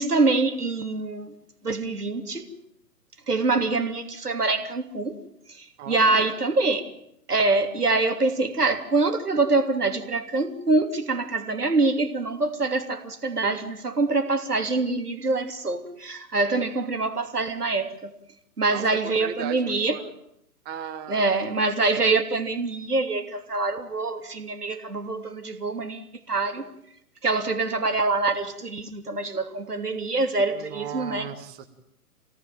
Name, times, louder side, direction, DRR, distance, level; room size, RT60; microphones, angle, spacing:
voice 1, 0.0-1.3 1.6-2.6 3.3-5.2 5.5-6.8 7.3-18.2 18.6-19.9 21.1-26.6 27.2-31.3, right 3 dB, 80° right, 6 dB, 3.2 m, -25 dB
voice 2, 5.8-6.4 18.7-20.1 20.7-21.4 30.5-31.7, right 8 dB, 20° right, 5 dB, 1.9 m, -37 dB
25.5 x 18.0 x 9.2 m, 0.74 s
figure-of-eight pair, 120°, 46 cm